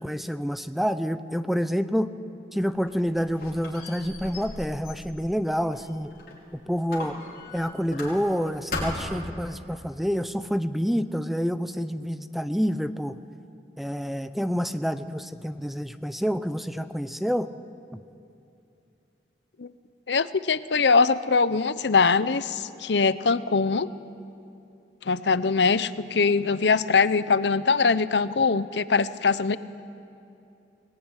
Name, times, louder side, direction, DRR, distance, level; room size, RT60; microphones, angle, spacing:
voice 1, 0.0-2.1 2.5-6.1 6.7-7.2 7.5-13.2 13.8-17.5, equal, ahead, 12 dB, 0.6 m, -28 dB
Squeak, 2.6-6.4 6.9-8.4 8.7-9.3, left 2 dB, 60° left, 5.2 m, -37 dB
voice 2, 20.1-23.9 25.1-29.6, left 4 dB, 80° left, 15 dB, 0.7 m, -22 dB
22.0 x 19.0 x 9.9 m, 2.7 s
head